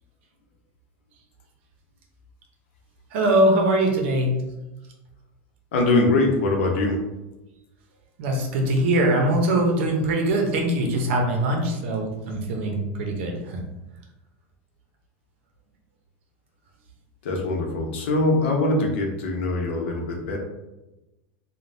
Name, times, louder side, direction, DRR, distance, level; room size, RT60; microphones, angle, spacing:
voice 1, 3.1-4.4 8.2-13.6, right 1 dB, 75° right, 2 dB, 0.7 m, -22 dB
voice 2, 5.7-7.0 17.2-20.4, left 2 dB, 80° left, 0 dB, 0.7 m, -22 dB
3.3 x 2.2 x 2.6 m, 1.0 s
supercardioid pair, 130°, 6 cm